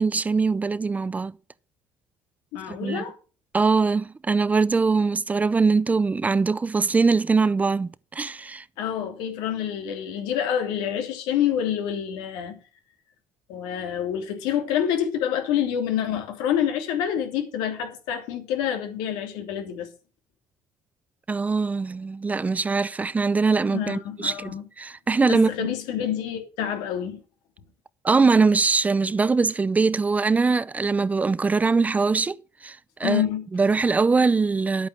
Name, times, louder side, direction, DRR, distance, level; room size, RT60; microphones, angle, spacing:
voice 1, 0.0-1.3 2.7-3.0 3.5-8.6 21.3-25.7 28.0-32.4 32.6-33.2 33.5-34.9, right 4 dB, 20° right, 0.6 m, -22 dB
voice 2, 2.5-3.2 8.8-12.5 13.5-19.9 23.7-24.6 25.3-27.2 33.0-33.5, left 9 dB, 85° left, 3.0 m, -27 dB
10.5 x 8.7 x 6.2 m
cardioid pair, 100°, 7 cm